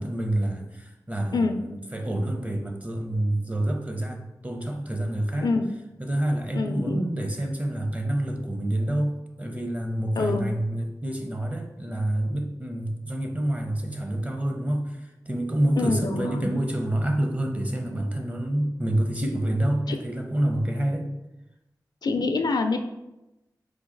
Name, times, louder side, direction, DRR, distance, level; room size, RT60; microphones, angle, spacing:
voice 1, 0.0-5.5 6.0-21.1, right 1 dB, 20° right, 4 dB, 0.7 m, -27 dB
voice 2, 6.5-7.1 10.2-10.5 15.8-16.5 19.9-20.0 22.0-22.8, left 3 dB, 70° left, 7 dB, 0.4 m, -25 dB
3.9 x 2.8 x 3.8 m, 0.95 s
cardioid pair, 50°, 7 cm